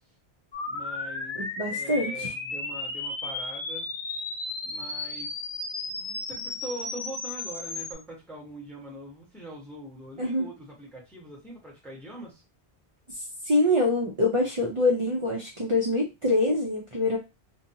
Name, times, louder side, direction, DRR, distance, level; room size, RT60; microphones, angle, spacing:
sound 1, 0.5-7.9, left 3 dB, 50° left, 0.3 m, -34 dB
voice 1, 0.6-1.4 1.7-3.9 4.6-5.3 5.9-12.4, right 1 dB, ahead, -3 dB, 0.9 m, -42 dB
voice 2, 1.4-2.3 10.2-10.5 13.1-17.2, left 2 dB, 40° right, -1 dB, 0.5 m, -25 dB
2.6 x 2.2 x 2.7 m, 0.26 s
omnidirectional pair, 1.1 m